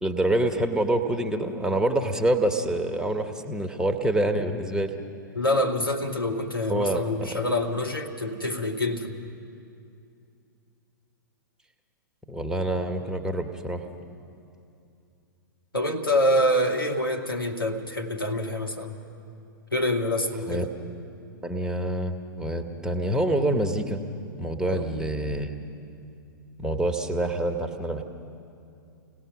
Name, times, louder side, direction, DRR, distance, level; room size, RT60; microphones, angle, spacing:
voice 1, 0.0-4.9 6.7-7.4 12.3-13.9 20.5-20.7 21.4-24.0 24.4-25.6 26.6-28.0, right 1 dB, 5° right, 4 dB, 1.2 m, -26 dB
voice 2, 5.4-9.2 15.7-19.0 19.7-20.7 24.7-24.9, left 1 dB, 90° left, 1 dB, 1.9 m, -26 dB
29.0 x 17.5 x 6.1 m, 2.6 s
figure-of-eight pair, 105°, 11 cm